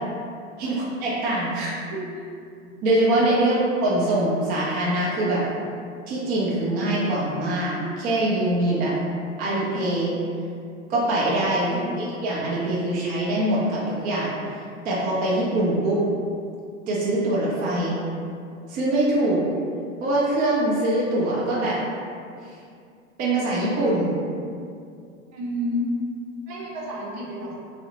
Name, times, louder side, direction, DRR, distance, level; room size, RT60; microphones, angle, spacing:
voice 1, 0.6-2.0 2.6-5.5 6.1-8.9 9.4-10.1 10.9-14.4 14.8-16.0 16.9-18.0 18.7-19.4 20.0-21.8 22.4-22.6 23.2-24.1, right 1 dB, 25° right, -6 dB, 0.4 m, -23 dB
voice 2, 25.3-25.9 26.5-27.6, left 1 dB, 55° right, -4 dB, 0.7 m, -30 dB
2.6 x 2.0 x 2.8 m, 2.4 s
hypercardioid pair, 100°, 38 cm